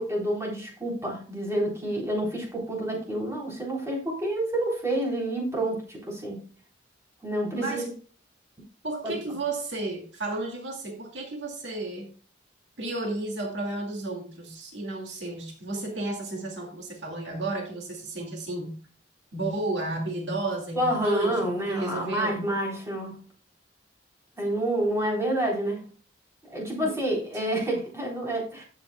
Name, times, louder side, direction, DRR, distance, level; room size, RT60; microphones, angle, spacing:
voice 1, 0.0-6.4 7.2-7.8 9.0-9.1 20.7-23.2 24.4-25.8 26.5-28.6, right 1 dB, 15° right, -2 dB, 3.8 m, -28 dB
voice 2, 7.5-7.9 8.8-12.1 12.8-18.8 19.3-22.4 26.8-27.0 27.3-27.4, right 2 dB, 70° right, 1 dB, 2.1 m, -32 dB
14.5 x 7.4 x 2.2 m, 0.40 s
head